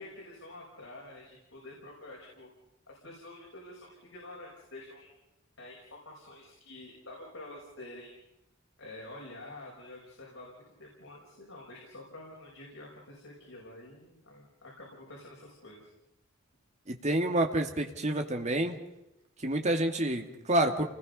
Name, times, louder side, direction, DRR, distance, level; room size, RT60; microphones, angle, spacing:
voice 1, 0.0-2.5 2.9-5.1 5.6-8.2 8.8-15.9, left 2 dB, 80° left, -3 dB, 6.0 m, -48 dB
voice 2, 16.9-18.8 19.4-20.8, right 1 dB, 35° right, 3 dB, 2.2 m, -28 dB
29.5 x 20.0 x 5.5 m, 0.89 s
head